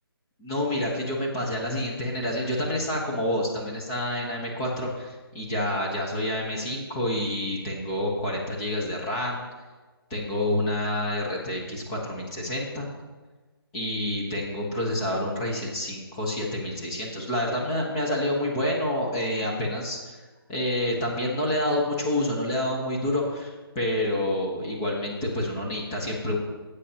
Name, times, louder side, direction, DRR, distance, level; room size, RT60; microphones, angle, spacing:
voice 1, 0.4-9.4 10.1-12.9 13.7-20.2 20.5-26.4, left 1 dB, 15° left, -2 dB, 1.0 m, -28 dB
13.0 x 8.3 x 2.9 m, 1.3 s
hypercardioid pair, 170°, 13 cm